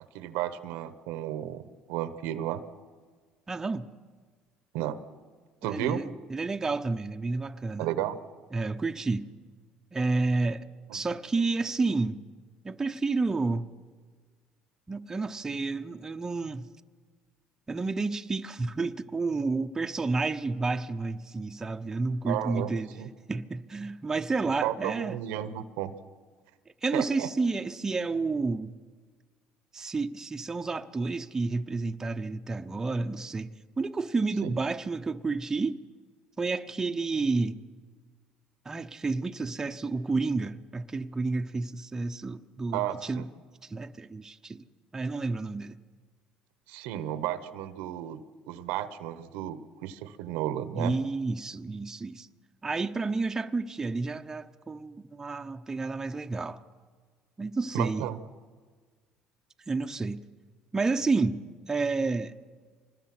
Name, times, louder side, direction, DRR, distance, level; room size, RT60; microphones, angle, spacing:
voice 1, 0.1-1.6 1.9-2.6 4.7-5.0 5.6-6.0 7.8-8.2 22.3-23.1 24.6-25.9 26.9-27.3 34.4-34.5 42.7-43.2 46.7-50.9 57.7-58.2, right 12 dB, 85° right, 1.0 m, -33 dB
voice 2, 3.5-3.9 5.6-7.9 8.5-9.3 9.9-10.7 10.9-12.2 12.6-13.7 14.9-16.7 17.7-22.9 23.3-25.2 26.8-28.7 29.7-33.5 33.8-35.8 36.4-37.6 38.6-43.3 43.7-44.6 44.9-45.7 50.7-52.3 52.6-56.6 57.4-58.1 59.7-60.2 60.7-62.4, right 3 dB, 20° right, 0.9 m, -30 dB
25.0 x 20.0 x 6.1 m
supercardioid pair, 90°, 3 cm